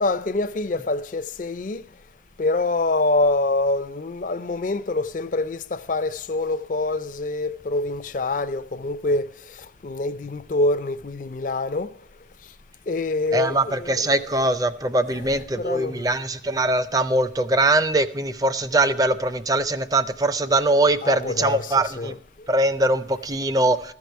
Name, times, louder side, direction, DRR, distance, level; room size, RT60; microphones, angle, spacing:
voice 1, 0.0-1.9 2.4-11.9 12.9-14.1 15.1-16.0 21.0-22.2, left 2 dB, 45° left, 0.5 m, -26 dB
voice 2, 13.3-22.2 22.5-23.9, right 2 dB, 20° right, 0.5 m, -22 dB
14.0 x 4.8 x 7.9 m
head